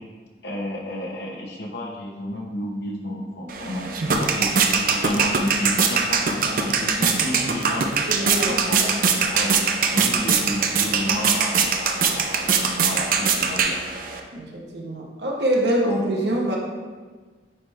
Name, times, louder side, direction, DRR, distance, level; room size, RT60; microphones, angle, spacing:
voice 1, 0.4-7.9 8.5-9.5 9.9-13.8, equal, 70° left, 0 dB, 1.0 m, -31 dB
sound 1, 3.5-14.2, right 5 dB, 50° right, 0.5 m, -22 dB
voice 2, 8.1-8.9 14.3-16.6, right 1 dB, 70° right, -2 dB, 1.1 m, -25 dB
8.9 x 3.3 x 3.5 m, 1.4 s
head